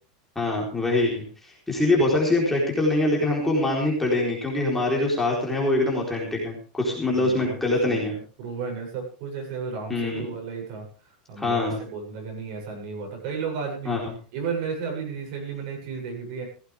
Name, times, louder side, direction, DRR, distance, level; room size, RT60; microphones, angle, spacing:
voice 1, 0.4-1.2 1.7-8.1 9.9-10.2 11.4-11.8 13.8-14.1, left 2 dB, 5° left, -3 dB, 4.1 m, -24 dB
voice 2, 7.1-10.9 11.3-14.0 14.3-16.5, right 5 dB, 55° right, 1 dB, 7.9 m, -33 dB
16.5 x 15.0 x 3.6 m, 0.37 s
supercardioid pair, 165°, 4 cm